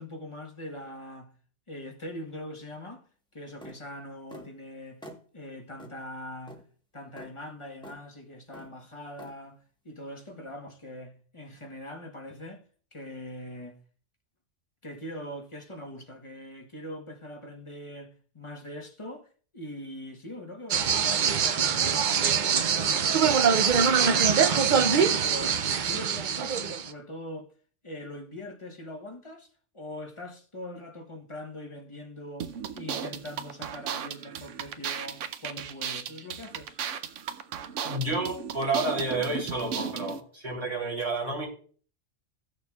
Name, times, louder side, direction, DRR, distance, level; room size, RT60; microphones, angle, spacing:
voice 1, 0.0-1.3 1.7-3.0 3.3-5.1 5.3-6.6 6.9-12.6 12.9-13.8 14.8-24.1 24.3-25.6 25.9-27.5 27.8-36.8, left 1 dB, 25° left, 1.0 m, -42 dB
sound 1, 3.6-3.8 4.3-4.5 5.0-5.2 5.8-6.0 6.5-6.6 7.2-7.3 7.8-8.0 8.5-8.7 9.2-9.3, equal, 5° left, 1.1 m, -45 dB
sound 2, 20.7-26.9, right 6 dB, 55° right, 0.6 m, -23 dB
sound 3, 32.4-40.2, right 8 dB, 85° right, 1.0 m, -35 dB
voice 2, 37.8-41.5, right 2 dB, 35° right, 3.9 m, -30 dB
16.5 x 6.7 x 2.3 m
omnidirectional pair, 1.3 m